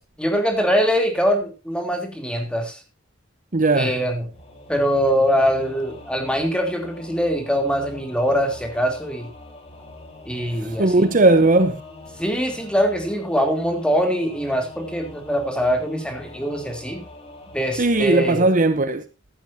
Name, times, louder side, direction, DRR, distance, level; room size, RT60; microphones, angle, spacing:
voice 1, 0.2-2.8 3.7-4.2 4.7-9.3 10.2-11.1 12.2-17.0 17.5-18.5, equal, 5° left, 3.0 m, -23 dB
voice 2, 3.5-4.0 10.6-11.8 17.8-19.0, right 2 dB, 45° right, 0.9 m, -17 dB
Singing / Musical instrument, 4.3-18.2, left 2 dB, 35° left, 4.3 m, -43 dB
15.5 x 12.0 x 2.7 m
head